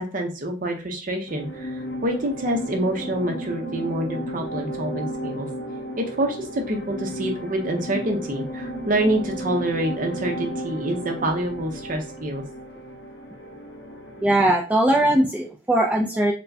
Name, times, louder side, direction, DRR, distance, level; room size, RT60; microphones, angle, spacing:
voice 1, 0.0-1.7 2.0-5.5 6.0-12.4, right 1 dB, 45° right, 3 dB, 0.7 m, -26 dB
sound 1, 1.3-14.6, equal, 65° left, 0.7 m, -34 dB
voice 2, 14.2-16.3, right 1 dB, 10° right, -1 dB, 0.4 m, -20 dB
4.3 x 2.2 x 2.7 m, 0.34 s
head